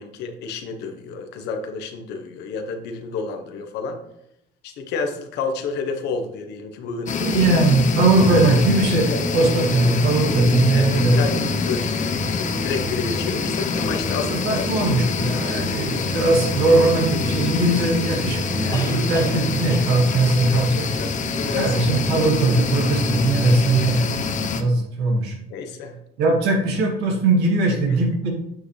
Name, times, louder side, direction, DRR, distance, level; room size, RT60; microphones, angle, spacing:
voice 1, 0.0-4.0 4.6-7.5 9.0-9.5 10.7-12.0 12.3-14.7 15.9-16.1 20.9-21.8 25.5-26.0 27.6-27.8, left 4 dB, 85° left, 6 dB, 1.2 m, -30 dB
sound 1, 7.1-24.6, left 5 dB, 45° left, 0.9 m, -26 dB
voice 2, 7.2-11.4 14.2-20.9 21.5-25.4 26.2-28.3, right 2 dB, 85° right, 0 dB, 2.4 m, -20 dB
sound 2, 8.2-23.9, equal, 15° right, 1.1 m, -30 dB
sound 3, 18.7-19.4 19.7-20.0 22.0-22.1 22.3-22.5, left 1 dB, 25° left, 1.9 m, -34 dB
8.8 x 6.2 x 3.4 m, 0.78 s
cardioid pair, 110°, 17 cm